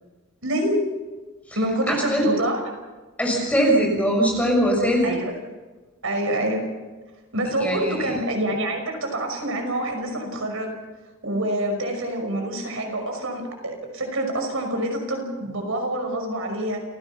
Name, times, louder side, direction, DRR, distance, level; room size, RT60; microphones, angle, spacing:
voice 1, 0.4-0.8 1.6-2.6 5.0-5.3 6.0-6.7 7.3-10.8 11.2-16.8, right 1 dB, 65° right, 3 dB, 5.7 m, -26 dB
voice 2, 3.2-5.2 7.6-7.9, equal, 5° left, 0 dB, 6.3 m, -21 dB
29.0 x 17.0 x 5.8 m, 1.2 s
head